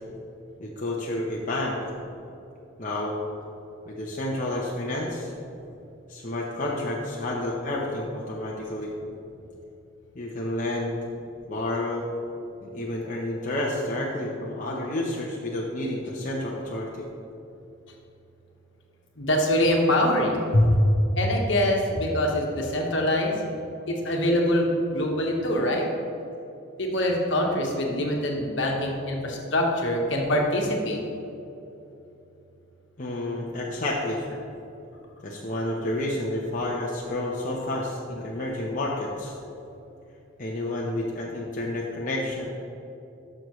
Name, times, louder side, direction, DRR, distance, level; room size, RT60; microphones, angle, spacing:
voice 1, 0.6-1.7 2.8-3.1 3.9-5.3 6.1-8.9 10.1-11.0 11.5-12.1 12.6-17.0 20.5-20.8 33.0-34.3 35.2-39.4 40.4-42.5, left 1 dB, 40° left, -4 dB, 0.8 m, -29 dB
voice 2, 19.2-20.5 21.2-23.4 23.9-25.9 26.8-31.0, left 1 dB, 65° left, 0 dB, 1.3 m, -24 dB
12.0 x 6.5 x 3.1 m, 2.9 s
head